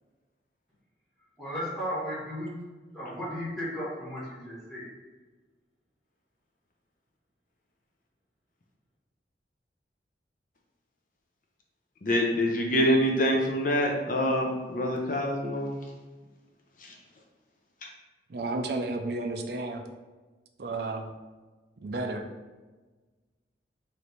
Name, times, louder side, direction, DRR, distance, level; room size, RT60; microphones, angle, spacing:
voice 1, 1.4-2.6 2.9-4.9, equal, ahead, -12 dB, 1.4 m, -35 dB
voice 2, 12.0-15.8 16.8-16.9, equal, 45° left, 0 dB, 0.7 m, -25 dB
voice 3, 18.3-19.8 20.6-21.1 21.8-22.2, right 2 dB, 60° right, 4 dB, 0.4 m, -32 dB
3.2 x 3.2 x 4.0 m, 1.3 s
head